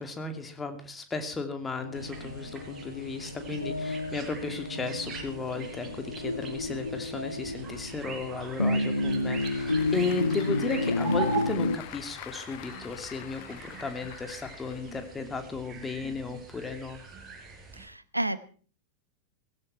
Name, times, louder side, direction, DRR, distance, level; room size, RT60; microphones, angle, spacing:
voice 1, 0.0-17.0, left 4 dB, 15° left, 7 dB, 2.8 m, -35 dB
sound 1, 1.8-11.8, left 2 dB, 85° left, 1.0 m, -31 dB
sound 2, 1.9-17.9, right 5 dB, 20° right, 7.2 m, -42 dB
Applause / Crowd, 8.7-15.4, left 16 dB, 50° left, 1.1 m, -46 dB
voice 2, 17.8-18.4, right 1 dB, 85° right, 16 dB, 1.0 m, -31 dB
16.5 x 16.0 x 4.4 m, 0.42 s
figure-of-eight pair, 90°, 0 cm